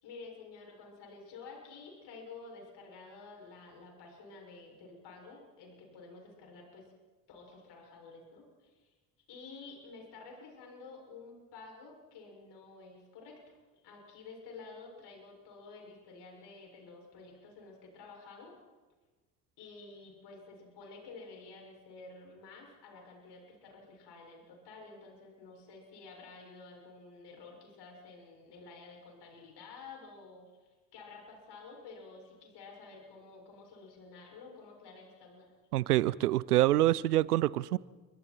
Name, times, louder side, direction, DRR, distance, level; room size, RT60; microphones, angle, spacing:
voice 1, 0.0-6.9 7.3-8.9 9.3-13.4 13.8-18.5 19.6-30.4 30.9-35.5, left 4 dB, 65° left, 7.1 m, -51 dB
voice 2, 35.7-37.8, right 15 dB, 90° right, 0.6 m, -26 dB
30.0 x 24.5 x 4.6 m
hypercardioid pair, 50°, 44 cm